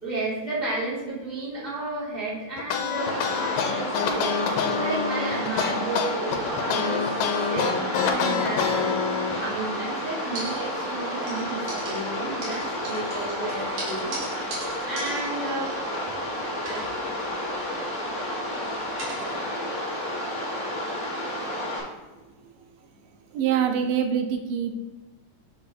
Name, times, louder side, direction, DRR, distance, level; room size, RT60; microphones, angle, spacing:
voice 1, 0.0-7.0 7.5-9.0 9.4-14.2 14.8-15.7 16.6-16.9, right 2 dB, 20° left, -9 dB, 1.3 m, -32 dB
sound 1, 2.6-9.4, left 6 dB, 85° left, 2.3 m, -26 dB
sound 2, 3.0-21.8, left 1 dB, 65° left, 0.6 m, -31 dB
sound 3, 7.9-9.9 10.3-11.0 11.3-16.3 16.6-19.3, right 2 dB, 65° right, 3.0 m, -40 dB
voice 2, 23.3-24.8, right 8 dB, 85° right, 6 dB, 2.3 m, -24 dB
7.0 x 2.8 x 5.8 m, 1.2 s
omnidirectional pair, 3.8 m